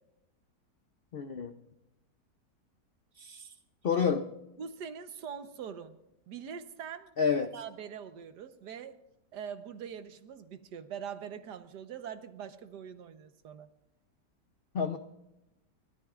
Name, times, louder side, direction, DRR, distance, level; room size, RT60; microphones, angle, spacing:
voice 1, 1.1-1.5 3.2-3.5 3.8-4.3 7.2-7.5 14.7-15.0, left 6 dB, 70° left, 9 dB, 0.5 m, -29 dB
voice 2, 4.6-6.0 6.3-7.1 7.5-9.0 9.3-13.7, right 7 dB, 75° right, 9 dB, 1.6 m, -43 dB
29.5 x 13.5 x 2.5 m, 0.93 s
omnidirectional pair, 1.8 m